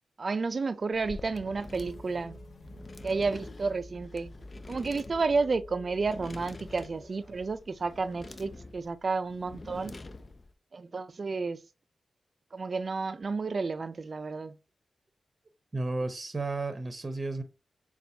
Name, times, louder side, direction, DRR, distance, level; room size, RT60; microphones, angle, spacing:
voice 1, 0.2-2.4 3.0-4.3 4.7-10.0 10.7-11.6 12.5-14.5, right 4 dB, 55° right, 0.4 m, -31 dB
sound 1, 0.9-10.5, left 2 dB, 45° left, 0.4 m, -47 dB
sound 2, 1.7-7.5, left 1 dB, 60° left, 0.8 m, -48 dB
voice 2, 8.3-8.8 15.7-17.4, right 3 dB, 35° right, 0.7 m, -34 dB
6.6 x 2.4 x 2.7 m
cardioid pair, 45°, 0 cm